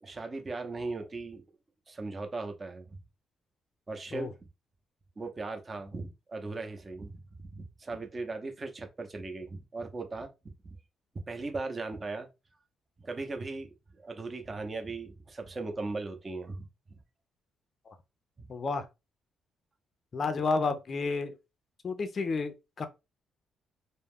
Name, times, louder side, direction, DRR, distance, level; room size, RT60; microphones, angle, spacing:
voice 1, 0.0-1.4 1.9-3.0 3.9-4.3 5.2-10.3 10.6-10.8 11.3-12.3 13.0-17.0 18.4-18.5, right 3 dB, 30° right, 0.6 m, -38 dB
voice 2, 18.5-18.9 20.1-21.4 21.8-22.9, left 4 dB, 45° left, 0.4 m, -31 dB
2.3 x 2.0 x 3.4 m
cardioid pair, 90°, 0 cm